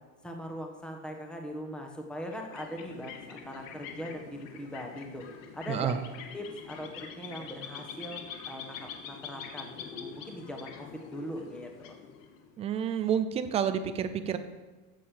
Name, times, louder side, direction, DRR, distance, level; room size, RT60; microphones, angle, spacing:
voice 1, 0.2-5.2 5.5-5.9 6.3-12.0, equal, ahead, 2 dB, 1.3 m, -41 dB
sound 1, 2.3-12.6, left 7 dB, 75° left, 2.1 m, -45 dB
voice 2, 5.7-6.0 12.6-14.4, right 8 dB, 15° right, 10 dB, 0.4 m, -29 dB
15.0 x 6.6 x 7.7 m, 1.3 s
cardioid pair, 180°, 39 cm